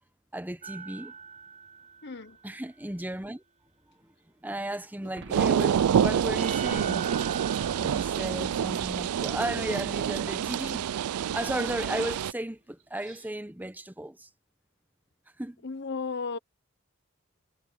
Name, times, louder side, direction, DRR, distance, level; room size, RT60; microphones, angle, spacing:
voice 1, 0.3-1.1 2.4-3.4 4.4-7.1 7.7-10.9 11.3-14.3 15.4-15.6, right 1 dB, 10° right, 0.8 m, -34 dB
sound 1, 0.6-2.6 5.6-9.3 12.8-13.3, right 6 dB, 35° right, 4.3 m, -44 dB
voice 2, 2.0-2.4 15.6-16.4, left 4 dB, 50° left, 0.8 m, -34 dB
sound 2, 5.0-7.5, right 2 dB, 60° right, 1.4 m, -52 dB
sound 3, 5.3-12.3, right 8 dB, 85° right, 0.4 m, -27 dB
head